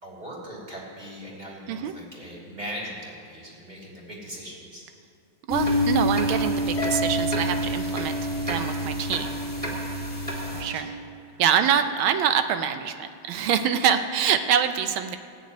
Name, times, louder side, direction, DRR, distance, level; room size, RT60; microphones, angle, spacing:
voice 1, 0.0-4.9 10.4-11.0 11.3-11.4, equal, 20° right, -4 dB, 2.7 m, -40 dB
sound 1, 5.5-10.6, equal, 5° right, 2.3 m, -27 dB
voice 2, 5.5-9.4 10.5-10.9 11.4-15.2, right 8 dB, 80° right, 9 dB, 1.5 m, -25 dB
Harp, 6.8-9.2, right 2 dB, 45° left, 1.9 m, -34 dB
14.5 x 6.6 x 9.3 m, 2.3 s
omnidirectional pair, 2.2 m